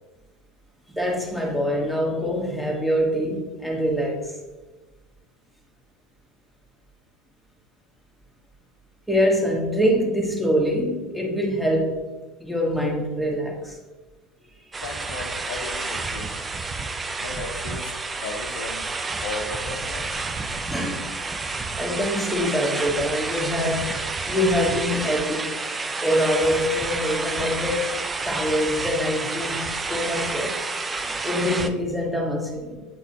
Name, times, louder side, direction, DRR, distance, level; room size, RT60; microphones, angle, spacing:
voice 1, 0.9-4.3 9.1-12.0 12.4-13.8 20.7-21.1 21.7-25.5 26.0-27.9 28.2-29.6 29.9-30.6 31.1-32.9, equal, ahead, -1 dB, 1.4 m, -24 dB
sound 1, 14.7-31.7, right 3 dB, 20° right, 0.5 m, -29 dB
voice 2, 14.8-16.3 17.2-18.9 19.2-20.1, left 3 dB, 70° left, 6 dB, 0.7 m, -35 dB
9.1 x 3.9 x 2.8 m, 1.2 s
hypercardioid pair, 75°, 0 cm